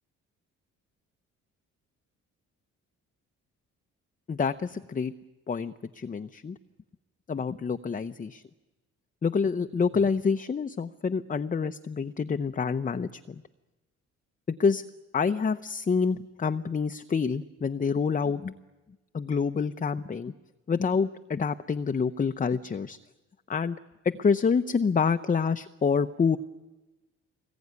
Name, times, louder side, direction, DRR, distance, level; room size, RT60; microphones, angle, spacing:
voice 1, 4.3-5.1 5.5-6.6 7.3-8.4 9.2-13.4 14.5-14.8 15.1-18.5 19.1-20.3 20.7-23.0 23.5-23.8 24.2-26.4, left 5 dB, 25° left, 9 dB, 0.8 m, -27 dB
24.5 x 21.0 x 9.6 m, 1.1 s
cardioid pair, 90°, 30 cm